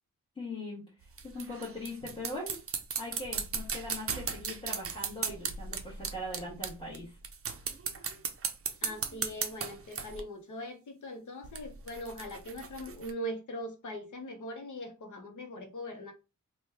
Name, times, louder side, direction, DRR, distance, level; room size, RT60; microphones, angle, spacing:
voice 1, 0.3-0.8 1.2-2.6 3.0-7.2, left 1 dB, 15° left, 1.1 m, -40 dB
sound 1, 1.0-7.0 7.2-10.2 11.4-13.1, right 6 dB, 45° right, 0.4 m, -36 dB
voice 2, 8.8-16.1, equal, 65° left, 0.7 m, -41 dB
3.0 x 2.2 x 3.3 m
wide cardioid pair, 115°, 33 cm